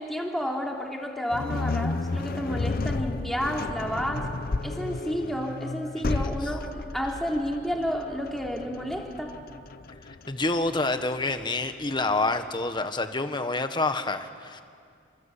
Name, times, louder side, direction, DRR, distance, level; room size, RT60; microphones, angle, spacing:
voice 1, 0.0-4.3 4.6-9.3, equal, ahead, -1 dB, 3.0 m, -31 dB
sound 1, 1.3-12.5, left 3 dB, 50° left, 0.7 m, -33 dB
voice 2, 10.3-14.6, left 2 dB, 25° left, 8 dB, 1.4 m, -27 dB
27.5 x 26.0 x 8.4 m, 2.3 s
head